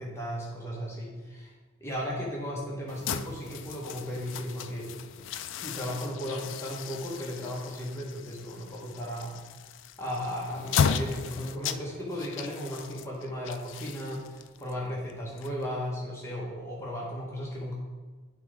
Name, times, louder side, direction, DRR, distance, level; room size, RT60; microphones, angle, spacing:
voice 1, 0.0-1.5 1.8-4.9 5.6-9.4 10.0-17.7, equal, 15° left, -4 dB, 1.1 m, -35 dB
sound 1, 2.9-16.0, left 7 dB, 80° left, 0.4 m, -35 dB
9.2 x 3.8 x 4.7 m, 1.4 s
head